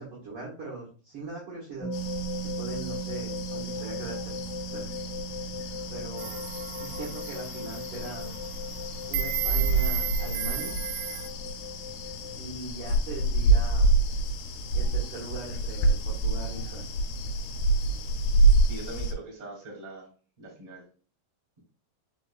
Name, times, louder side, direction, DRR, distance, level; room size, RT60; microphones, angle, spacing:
voice 1, 0.0-1.9 2.6-4.4 4.7-5.0 5.9-8.4 9.1-10.8 12.3-13.9 14.7-17.0, right 3 dB, 65° right, -7 dB, 1.4 m, -40 dB
sound 1, 1.8-12.4, equal, 55° left, 1.3 m, -38 dB
sound 2, 1.9-19.1, right 2 dB, 85° left, 2.7 m, -28 dB
sound 3, 6.2-11.3, right 10 dB, 85° right, 2.4 m, -34 dB
voice 2, 18.6-20.1 20.4-20.8, right 2 dB, 15° right, -2 dB, 1.7 m, -42 dB
4.8 x 4.7 x 2.3 m, 0.39 s
omnidirectional pair, 4.6 m